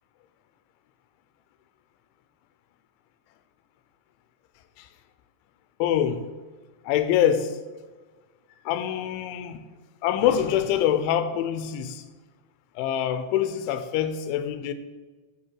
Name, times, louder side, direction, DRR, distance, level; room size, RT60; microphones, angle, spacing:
voice 1, 5.8-6.2 6.9-7.6 8.7-9.6 10.0-12.0 12.8-14.7, left 10 dB, 85° left, 3.0 m, -25 dB
10.5 x 6.2 x 7.4 m
omnidirectional pair, 5.4 m